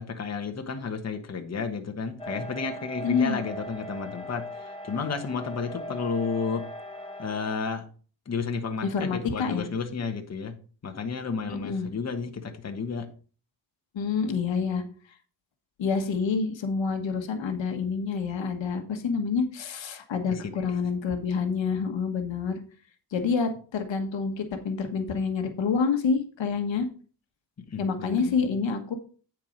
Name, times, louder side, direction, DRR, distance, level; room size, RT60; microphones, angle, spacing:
voice 1, 0.0-6.7 7.2-7.8 8.2-10.5 10.8-13.1 20.3-20.7 27.6-28.3, left 5 dB, 35° left, 5 dB, 1.3 m, -32 dB
sound 1, 2.2-7.6, equal, 10° left, 1.3 m, -39 dB
voice 2, 3.0-3.4 8.8-9.7 11.5-11.9 13.9-14.8 15.8-22.6 23.1-26.9 27.8-28.9, left 5 dB, 70° left, 7 dB, 1.4 m, -27 dB
9.0 x 4.7 x 5.1 m, 0.39 s
cardioid pair, 85°, 46 cm